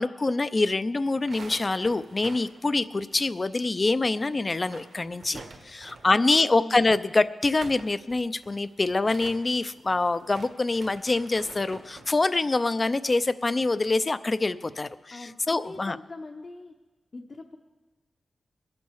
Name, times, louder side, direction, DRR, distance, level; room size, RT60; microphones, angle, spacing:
voice 1, 0.0-16.0, left 3 dB, 30° left, 14 dB, 0.5 m, -25 dB
sound 1, 1.1-3.7 4.0-4.1 4.4-6.2 7.3-12.2, right 3 dB, 70° right, 1.6 m, -47 dB
voice 2, 6.0-6.9 15.1-16.8 17.1-17.6, left 2 dB, 50° left, 2 dB, 0.9 m, -42 dB
22.0 x 8.4 x 4.8 m, 1.2 s
wide cardioid pair, 95°, 0 cm